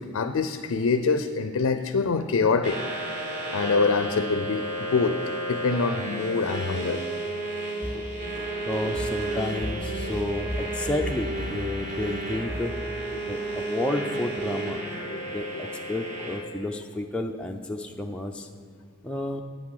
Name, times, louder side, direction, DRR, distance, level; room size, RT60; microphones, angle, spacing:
voice 1, 0.0-2.8 3.5-5.2 5.5-7.0 7.9-8.0 8.5-8.6 13.1-13.2 15.1-15.2 15.5-15.6, left 4 dB, 75° left, 9 dB, 0.4 m, -25 dB
sound 1, 2.6-16.4, right 1 dB, 35° right, 1.9 m, -32 dB
sound 2, 7.8-12.7, equal, 20° right, 1.3 m, -36 dB
voice 2, 8.6-12.7 13.3-14.8 15.3-18.5 19.0-19.4, left 1 dB, 5° left, 1 dB, 0.4 m, -31 dB
8.9 x 6.0 x 6.5 m, 2.2 s
head